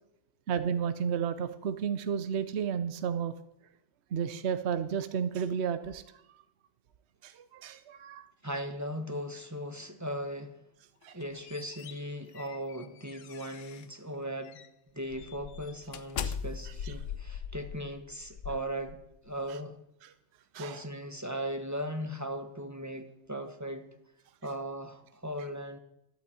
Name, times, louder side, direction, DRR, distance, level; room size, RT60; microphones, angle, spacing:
voice 1, 0.5-3.3 4.1-6.0 7.2-8.3 11.0-11.2 16.8-16.9 20.5-20.8, right 7 dB, 65° right, 11 dB, 1.0 m, -32 dB
voice 2, 8.4-10.6 11.1-14.6 14.9-19.0 19.2-19.8 20.5-23.9 24.4-25.8, equal, 15° right, 7 dB, 1.2 m, -38 dB
sound 1, 11.0-14.0 14.4-14.7 15.1-19.3, left 7 dB, 85° left, 1.1 m, -41 dB
12.0 x 9.2 x 8.6 m, 0.82 s
omnidirectional pair, 1.3 m